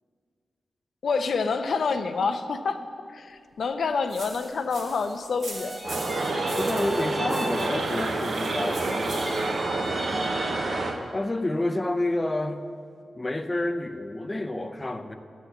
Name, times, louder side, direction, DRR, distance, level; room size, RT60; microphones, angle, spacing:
voice 1, 1.0-2.8 3.1-5.8, left 4 dB, 75° left, 8 dB, 0.5 m, -27 dB
sound 1, 4.1-9.6, right 2 dB, 85° right, 2.1 m, -42 dB
sound 2, 5.5-8.1 8.4-11.1, right 1 dB, 40° right, 2.0 m, -36 dB
sound 3, 5.8-11.0, right 2 dB, 65° right, 0.8 m, -28 dB
voice 2, 6.3-9.5 11.1-12.6 13.2-15.1, left 1 dB, 20° left, 7 dB, 0.5 m, -29 dB
11.5 x 4.4 x 8.0 m, 2.3 s
wide cardioid pair, 105°, 0 cm